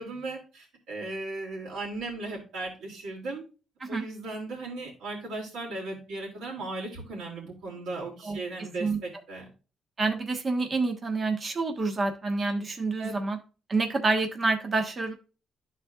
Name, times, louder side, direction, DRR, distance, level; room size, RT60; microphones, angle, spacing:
voice 1, 0.0-3.4 3.9-9.5 13.0-13.1, right 2 dB, 85° right, -4 dB, 2.7 m, -37 dB
voice 2, 10.0-13.4 13.7-15.1, right 3 dB, 35° right, 4 dB, 1.2 m, -27 dB
12.0 x 4.2 x 2.4 m, 0.34 s
cardioid pair, 90°, 0 cm